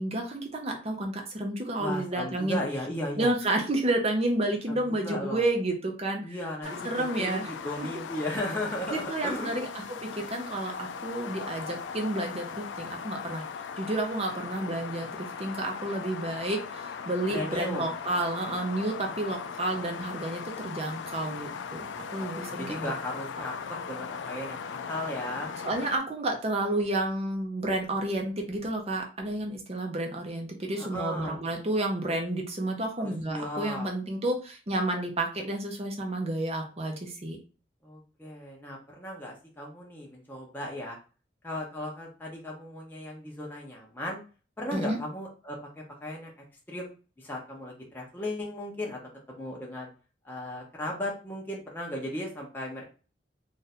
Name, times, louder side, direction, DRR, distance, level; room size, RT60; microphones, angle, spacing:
voice 1, 0.0-2.6 3.1-6.4 6.6-7.5 7.8-7.9 8.9-9.7 10.1-13.4 13.8-22.9 25.6-37.4 44.7-45.0, right 1 dB, 35° right, 2 dB, 0.8 m, -30 dB
voice 2, 1.8-3.3 4.7-5.4 6.2-6.9 7.2-9.6 10.1-10.3 17.3-17.9 21.9-25.5 30.8-31.4 33.0-33.9 37.8-41.0 41.4-44.2 44.6-45.6 46.0-46.3 46.7-49.0 49.3-49.9 50.2-52.8, left 1 dB, 10° left, -3 dB, 0.7 m, -36 dB
sound 1, 6.6-26.0, left 6 dB, 85° left, 0.4 m, -39 dB
2.6 x 2.5 x 4.1 m, 0.35 s
head